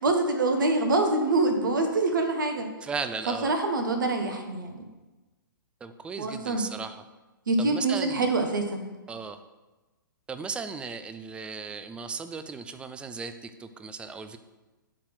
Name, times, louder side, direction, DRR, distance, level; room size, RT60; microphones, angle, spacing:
voice 1, 0.0-2.7 3.3-4.8 6.2-6.6 7.5-8.8, right 2 dB, 65° right, 5 dB, 1.2 m, -25 dB
voice 2, 2.8-3.5 5.8-7.0 7.6-8.3 9.1-9.4 10.3-14.4, right 5 dB, 10° right, 10 dB, 0.4 m, -36 dB
10.5 x 4.3 x 6.2 m, 1.2 s
figure-of-eight pair, 115°, 11 cm